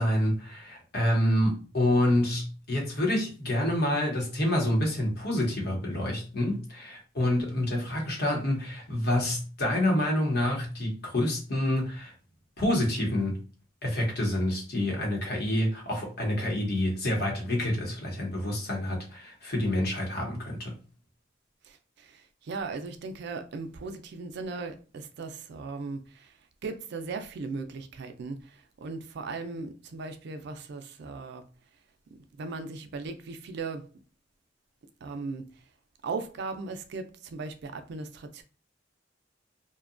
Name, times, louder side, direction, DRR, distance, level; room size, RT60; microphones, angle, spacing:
voice 1, 0.0-12.1 12.6-13.4 13.8-20.7, left 1 dB, 55° left, 0.9 m, -27 dB
voice 2, 21.6-31.4 32.1-33.9 35.0-35.6 36.0-38.4, right 4 dB, 60° right, 0.4 m, -38 dB
2.7 x 2.2 x 2.5 m
head